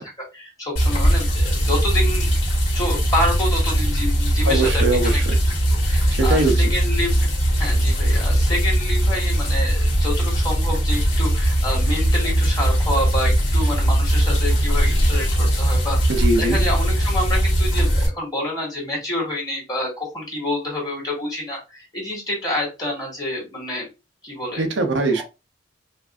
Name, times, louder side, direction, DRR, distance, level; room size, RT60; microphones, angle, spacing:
voice 1, 0.0-2.3 2.7-5.2 5.8-7.3 7.6-23.9 24.2-24.6 25.2-25.3, left 1 dB, 20° left, -3 dB, 2.0 m, -28 dB
sound 1, 0.8-18.1, equal, 70° left, 1.7 m, -19 dB
voice 2, 4.5-5.4 6.1-6.7 16.1-16.6 24.6-25.2, right 2 dB, 70° right, 5 dB, 0.6 m, -21 dB
4.7 x 2.6 x 2.4 m, 0.26 s
head